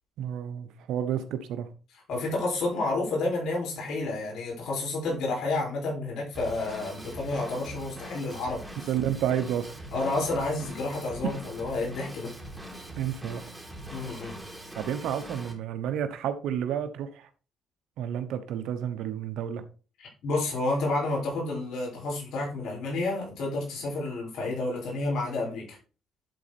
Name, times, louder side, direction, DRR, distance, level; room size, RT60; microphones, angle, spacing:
voice 1, 0.2-1.7 8.9-9.7 11.2-11.3 13.0-13.4 14.7-17.3 18.0-19.6, right 9 dB, 85° right, 0.9 m, -30 dB
voice 2, 2.1-8.6 9.9-12.3 13.9-14.4 20.0-25.8, left 2 dB, 80° left, 5.0 m, -30 dB
Drum kit / Drum, 6.3-15.5, right 1 dB, 5° right, 2.9 m, -42 dB
10.5 x 4.3 x 4.2 m
cardioid pair, 90°, 0 cm